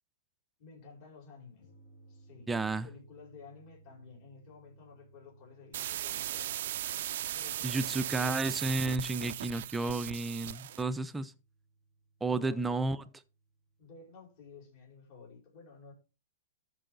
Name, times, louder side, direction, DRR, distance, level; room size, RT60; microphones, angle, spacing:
voice 1, 0.6-1.6 2.1-2.5 2.8-6.7 7.3-8.5 12.3-13.1 13.8-15.9, left 5 dB, 40° left, 5.0 m, -53 dB
sound 1, 1.6-14.5, right 3 dB, 60° left, 4.8 m, -63 dB
voice 2, 2.5-2.9 7.6-11.3 12.2-13.0, right 3 dB, 10° right, 0.6 m, -32 dB
sound 2, 5.7-10.9, right 13 dB, 60° right, 0.4 m, -37 dB
13.5 x 4.8 x 3.9 m
hypercardioid pair, 145°, 0 cm